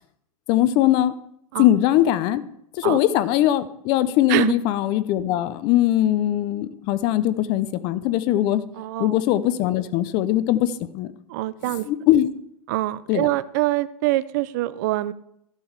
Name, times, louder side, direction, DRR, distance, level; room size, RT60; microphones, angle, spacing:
voice 1, 0.5-1.1 1.6-2.4 2.8-8.6 9.0-11.1 11.9-12.3 13.1-13.3, left 13 dB, 25° left, 15 dB, 0.5 m, -21 dB
voice 2, 8.8-9.2 11.3-11.9 12.7-15.1, right 17 dB, 30° right, 15 dB, 0.4 m, -24 dB
12.5 x 5.4 x 6.4 m, 0.73 s
hypercardioid pair, 160°, 19 cm